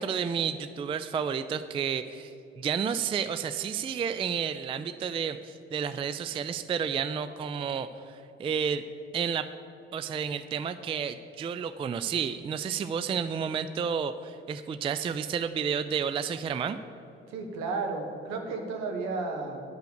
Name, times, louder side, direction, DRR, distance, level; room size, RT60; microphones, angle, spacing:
voice 1, 0.0-8.8 9.1-9.5 9.9-16.8, right 7 dB, 20° right, 12 dB, 0.3 m, -31 dB
voice 2, 17.3-19.6, right 3 dB, 60° right, 4 dB, 1.3 m, -33 dB
9.3 x 5.7 x 6.8 m, 2.7 s
figure-of-eight pair, 45°, 30 cm